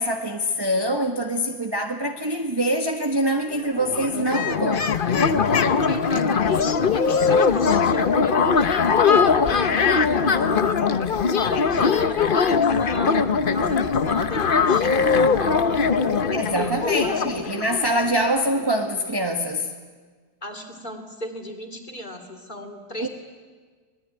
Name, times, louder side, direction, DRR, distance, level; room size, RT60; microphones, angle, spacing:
voice 1, 0.0-4.8 16.3-19.7 23.0-23.1, equal, 15° right, 2 dB, 1.3 m, -24 dB
sound 1, 3.4-3.5 3.7-18.3, left 5 dB, 45° left, 0.7 m, -21 dB
voice 2, 5.9-8.9 9.2-10.7 11.2-16.1 16.6-17.2 20.4-23.1, left 1 dB, 25° left, 4 dB, 3.0 m, -36 dB
25.0 x 20.0 x 9.8 m, 1.5 s
omnidirectional pair, 2.0 m